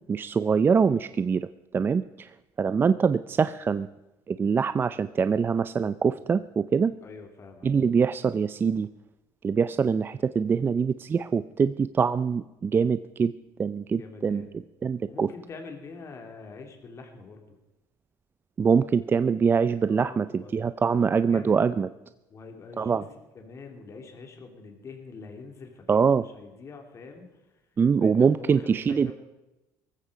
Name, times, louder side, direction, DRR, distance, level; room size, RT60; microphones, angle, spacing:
voice 1, 0.1-1.5 1.7-2.3 2.6-3.9 4.3-6.9 7.6-8.9 9.4-13.3 13.6-14.4 14.8-15.3 18.6-21.9 22.8-23.0 25.9-26.2 27.8-29.1, right 6 dB, 25° right, 13 dB, 0.5 m, -24 dB
voice 2, 7.0-7.7 13.9-14.6 15.1-17.6 19.9-20.7 21.0-21.9 22.3-27.5 28.0-29.1, left 4 dB, 40° left, 4 dB, 3.1 m, -45 dB
18.5 x 15.0 x 5.0 m, 1.0 s
cardioid pair, 120°, 8 cm